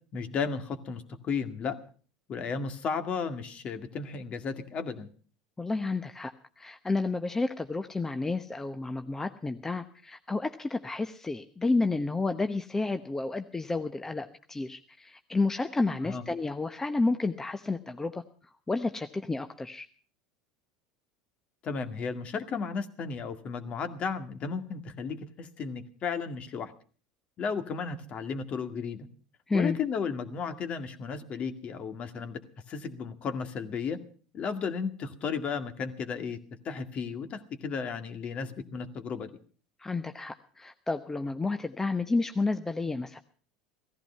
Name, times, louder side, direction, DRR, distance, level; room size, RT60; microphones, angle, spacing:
voice 1, 0.1-1.8 2.3-5.1 16.0-16.2 21.6-26.7 27.4-29.1 29.5-32.4 32.7-34.0 34.3-36.4 36.6-39.3, left 5 dB, 40° left, 8 dB, 2.0 m, -34 dB
voice 2, 5.6-18.2 18.7-19.9 29.5-29.8 39.8-43.2, left 3 dB, 15° left, 8 dB, 1.0 m, -31 dB
16.5 x 15.0 x 5.6 m, 0.41 s
hypercardioid pair, 80°, 3 cm